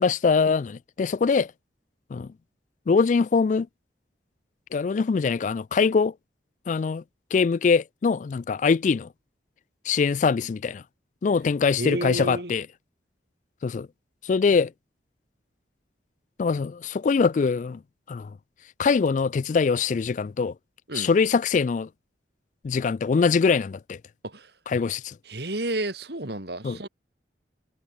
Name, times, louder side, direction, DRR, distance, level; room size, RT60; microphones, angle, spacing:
voice 1, 0.0-1.5 2.1-2.3 2.9-3.7 4.7-6.1 6.7-7.0 7.3-9.1 9.9-10.8 11.2-12.7 13.6-13.9 14.2-14.7 16.4-17.8 18.1-18.3 18.8-20.5 20.9-21.9 22.6-24.0 24.7-25.1 26.6-26.8, left 5 dB, 40° left, 0.3 m, -23 dB
voice 2, 11.8-12.5 20.9-21.1 24.2-24.5 25.3-26.9, right 1 dB, 60° right, 3.3 m, -31 dB
head